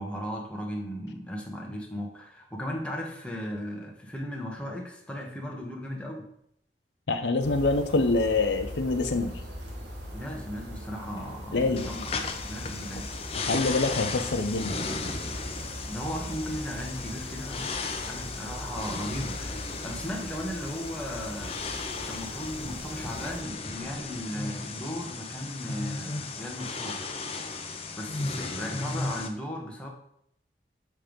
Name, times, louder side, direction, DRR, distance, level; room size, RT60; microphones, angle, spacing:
voice 1, 0.0-6.3 10.1-12.2 12.5-13.1 15.9-21.5 22.1-27.0 27.9-29.9, equal, 5° left, -1 dB, 0.9 m, -36 dB
voice 2, 7.1-9.3 11.5-11.9 13.3-14.8, left 3 dB, 85° left, 7 dB, 0.7 m, -25 dB
sound 1, 7.4-23.4, equal, 80° right, 1.6 m, -41 dB
sound 2, 11.8-29.3, left 3 dB, 35° left, 0.6 m, -35 dB
7.4 x 3.4 x 5.1 m, 0.71 s
head